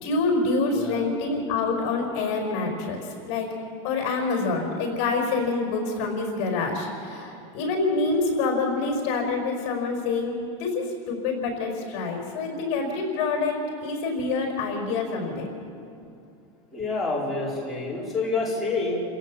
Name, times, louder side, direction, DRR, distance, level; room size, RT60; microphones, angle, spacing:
voice 1, 0.0-3.0 3.3-3.5 3.8-15.5, left 3 dB, 45° left, 2 dB, 5.0 m, -26 dB
voice 2, 0.7-1.1 16.7-19.0, left 3 dB, ahead, -6 dB, 4.6 m, -28 dB
29.0 x 16.5 x 7.4 m, 2.5 s
supercardioid pair, 170°, 15 cm